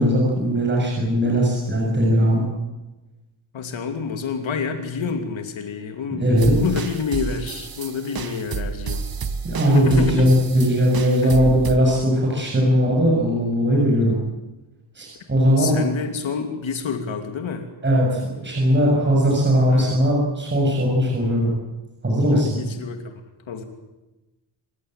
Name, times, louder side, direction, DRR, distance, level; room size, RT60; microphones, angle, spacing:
voice 1, 0.0-2.5 6.1-6.6 9.4-14.2 15.0-15.7 17.8-21.5 22.0-22.6, equal, 25° right, -2 dB, 6.9 m, -19 dB
voice 2, 3.5-9.0 9.7-10.3 11.2-11.4 15.6-17.7 19.7-20.0 22.3-23.1 23.5-23.6, left 5 dB, 70° left, 5 dB, 2.9 m, -28 dB
sound 1, 6.4-11.8, right 5 dB, 45° right, 1.7 m, -30 dB
27.5 x 16.5 x 9.1 m, 1.1 s
wide cardioid pair, 135°, 48 cm